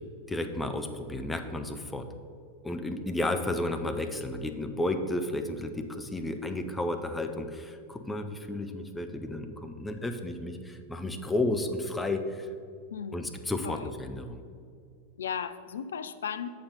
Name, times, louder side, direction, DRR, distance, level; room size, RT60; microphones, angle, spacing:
voice 1, 0.3-2.1 2.6-12.5 13.1-14.4, left 2 dB, 10° left, 6 dB, 0.6 m, -32 dB
voice 2, 12.9-13.3 13.6-13.9 15.2-16.5, left 7 dB, 65° left, 12 dB, 0.4 m, -36 dB
6.9 x 5.6 x 5.3 m, 2.3 s
figure-of-eight pair, 90°, 0 cm